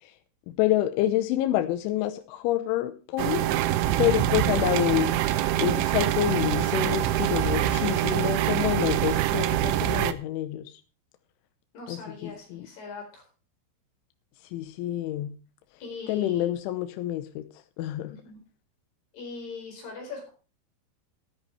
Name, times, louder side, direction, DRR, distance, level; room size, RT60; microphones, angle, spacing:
voice 1, 0.5-3.6 4.0-5.1 5.6-10.8 11.9-12.7 14.4-15.4 16.1-17.5 17.8-18.2, left 13 dB, 80° left, 9 dB, 3.2 m, -28 dB
sound 1, 3.2-10.1, right 12 dB, 80° right, 3.1 m, -25 dB
voice 2, 11.7-13.2 15.8-16.5 18.0-18.4 19.1-20.3, left 4 dB, 55° left, 2 dB, 6.0 m, -40 dB
14.0 x 13.0 x 3.2 m, 0.35 s
omnidirectional pair, 5.6 m